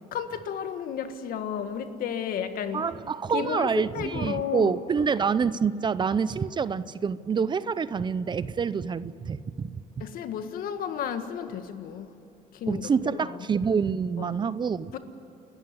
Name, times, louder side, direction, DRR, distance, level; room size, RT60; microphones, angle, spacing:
voice 1, 0.1-2.9 3.3-4.8 10.0-12.1 12.5-13.5 14.2-14.4 14.9-15.0, left 8 dB, 65° left, 8 dB, 1.7 m, -33 dB
voice 2, 2.7-10.0 12.7-14.9, right 6 dB, 30° right, 16 dB, 0.6 m, -27 dB
29.0 x 14.0 x 9.6 m, 2.9 s
cardioid pair, 120°, 16 cm